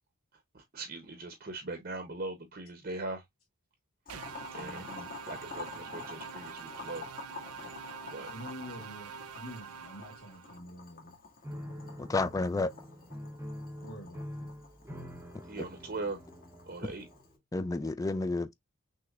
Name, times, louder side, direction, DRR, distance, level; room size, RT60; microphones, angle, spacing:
voice 1, 0.5-3.2 4.5-5.0 5.2-7.1 8.1-8.3 15.5-16.2 16.7-17.1, right 2 dB, 40° right, 0.7 m, -40 dB
Boiling, 4.1-17.3, left 4 dB, 40° left, 1.6 m, -49 dB
sound 1, 4.1-10.6, right 7 dB, 90° right, 0.5 m, -45 dB
voice 2, 4.5-5.2 8.3-11.2 13.8-14.5, equal, 80° left, 1.7 m, -47 dB
Piano, 11.4-17.4, equal, 10° right, 0.8 m, -45 dB
voice 3, 12.0-12.7 17.5-18.6, left 3 dB, 15° left, 0.3 m, -30 dB
5.9 x 3.0 x 2.3 m
head